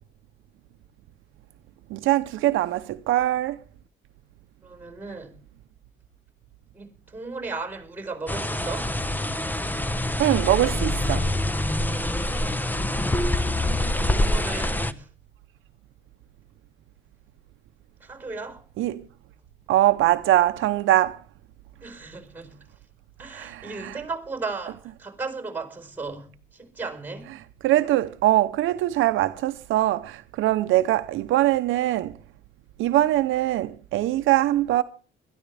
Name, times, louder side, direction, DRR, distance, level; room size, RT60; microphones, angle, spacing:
voice 1, 1.9-3.6 10.2-11.3 18.8-19.0 19.7-21.2 23.3-24.0 27.6-32.1 32.8-34.8, right 14 dB, 85° right, 0.7 m, -22 dB
voice 2, 4.6-5.4 6.7-8.9 13.8-15.1 18.0-18.6 21.8-22.6 23.2-27.3, right 3 dB, 10° right, 4.6 m, -36 dB
sound 1, 8.3-14.9, left 1 dB, 10° left, 0.9 m, -25 dB
22.0 x 13.5 x 3.4 m
cardioid pair, 90°, 20 cm